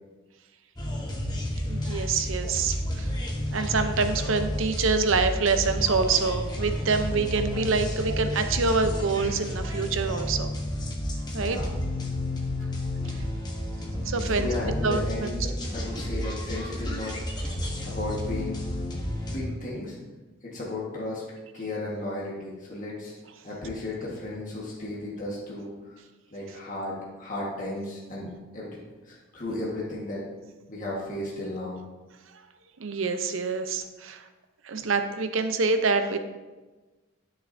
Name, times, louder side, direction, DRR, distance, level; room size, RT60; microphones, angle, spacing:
sound 1, 0.8-19.4, left 1 dB, 20° left, 1.0 m, -31 dB
voice 1, 1.6-3.1 3.5-10.5 11.3-11.6 12.7-13.2 14.0-14.5 14.8-15.4 17.6-17.7 32.8-34.2 34.6-36.2, right 4 dB, 75° right, 8 dB, 0.7 m, -26 dB
voice 2, 11.4-11.7 14.2-17.1 17.9-18.6 19.3-20.0 20.4-21.2 21.5-23.1 23.4-25.9 26.3-28.7 29.0-30.3 30.7-31.8, left 2 dB, 40° left, -5 dB, 1.5 m, -34 dB
11.5 x 6.6 x 2.7 m, 1.2 s
head